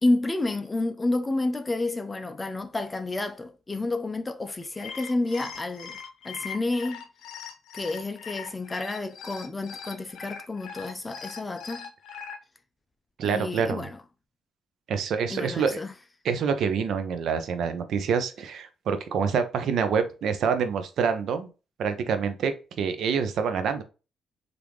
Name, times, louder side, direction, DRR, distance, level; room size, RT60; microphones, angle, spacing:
voice 1, 0.0-7.0 7.7-11.9 13.2-14.0 15.3-15.9, left 2 dB, 20° left, 0.3 m, -30 dB
sound 1, 4.6-12.4, left 7 dB, 80° left, 0.6 m, -40 dB
voice 2, 13.2-13.8 14.9-15.8 16.2-21.5 21.8-23.8, right 6 dB, 70° right, 0.5 m, -26 dB
3.4 x 2.5 x 2.9 m
cardioid pair, 90°, 0 cm